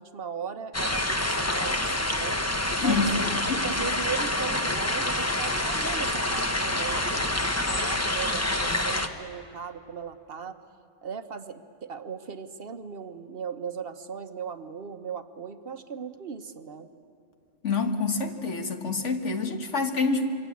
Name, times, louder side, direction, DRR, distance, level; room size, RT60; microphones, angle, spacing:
voice 1, 0.0-2.4 2.8-10.6 11.0-16.9, right 6 dB, 55° right, 8 dB, 1.1 m, -38 dB
sound 1, 0.7-9.1, left 1 dB, 15° left, 0.9 m, -27 dB
voice 2, 2.8-3.6 17.6-20.3, left 4 dB, 75° left, 5 dB, 1.9 m, -27 dB
27.0 x 23.5 x 8.5 m, 2.4 s
omnidirectional pair, 1.3 m